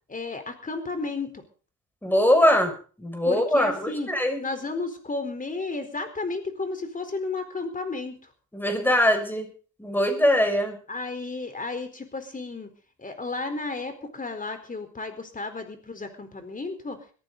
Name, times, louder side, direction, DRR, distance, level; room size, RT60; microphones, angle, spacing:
voice 1, 0.1-1.4 3.2-4.1 4.4-8.3 10.9-12.7 13.0-17.0, left 3 dB, 25° left, 8 dB, 4.3 m, -33 dB
voice 2, 2.0-2.7 3.0-4.4 8.5-9.5 9.8-10.8, equal, 5° left, 5 dB, 6.5 m, -22 dB
21.5 x 15.0 x 4.1 m, 0.41 s
cardioid pair, 90°, 30 cm